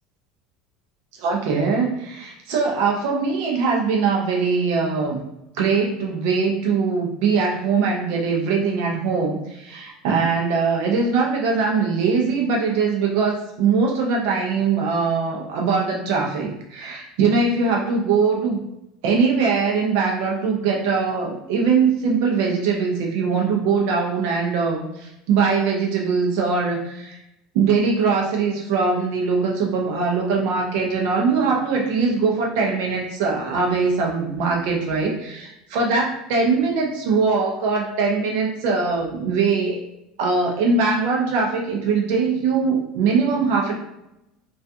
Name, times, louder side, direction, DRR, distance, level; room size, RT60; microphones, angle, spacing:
voice 1, 1.2-5.2 5.6-18.6 19.0-27.2 27.5-39.8 40.2-43.7, right 5 dB, 65° right, -1 dB, 0.5 m, -21 dB
2.3 x 2.3 x 2.6 m, 0.85 s
cardioid pair, 170°, 0 cm